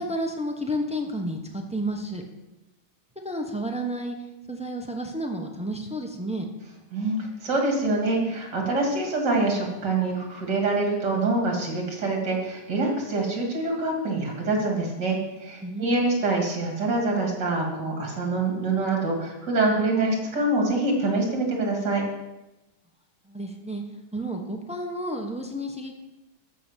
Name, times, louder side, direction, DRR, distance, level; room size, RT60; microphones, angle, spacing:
voice 1, 0.0-2.2 3.2-4.2 4.5-6.5 15.6-16.1 23.3-23.8 24.1-26.0, right 1 dB, 5° right, 3 dB, 0.5 m, -31 dB
voice 2, 6.9-22.0, right 2 dB, 55° right, 0 dB, 3.2 m, -25 dB
13.0 x 6.0 x 7.4 m, 1.0 s
omnidirectional pair, 2.3 m